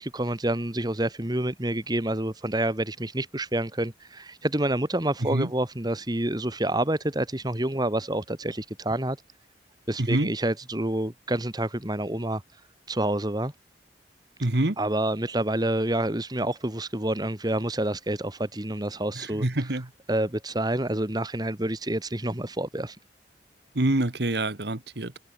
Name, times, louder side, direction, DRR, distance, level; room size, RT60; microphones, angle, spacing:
voice 1, 0.0-9.2 9.9-12.4 12.9-13.5 14.8-19.8 20.1-23.0, right 1 dB, 20° right, 1.9 m, -28 dB
voice 2, 10.0-10.3 14.4-14.8 19.2-19.9 23.8-25.2, right 1 dB, 65° right, 1.7 m, -26 dB
head